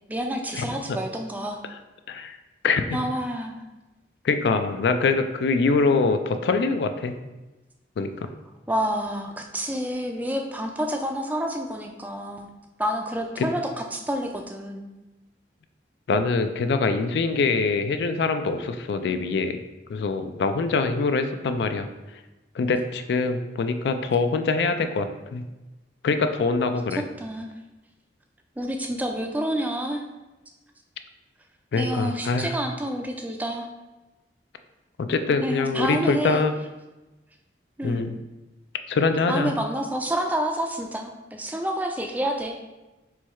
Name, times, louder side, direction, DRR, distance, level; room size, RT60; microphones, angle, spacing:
voice 1, 0.1-1.6 2.9-3.6 8.7-12.5 12.8-14.9 27.2-27.5 28.6-30.0 31.8-33.7 35.4-36.4 37.8-38.0 39.3-42.5, right 1 dB, 10° right, 3 dB, 0.3 m, -28 dB
voice 2, 2.6-3.0 4.2-7.2 8.0-8.3 13.4-13.5 16.1-19.6 19.9-21.9 22.5-25.1 25.3-25.4 26.0-27.0 31.7-32.6 35.0-36.6 37.8-38.2 38.9-39.5, left 4 dB, 70° left, 8 dB, 0.3 m, -24 dB
4.6 x 2.3 x 4.2 m, 1.1 s
head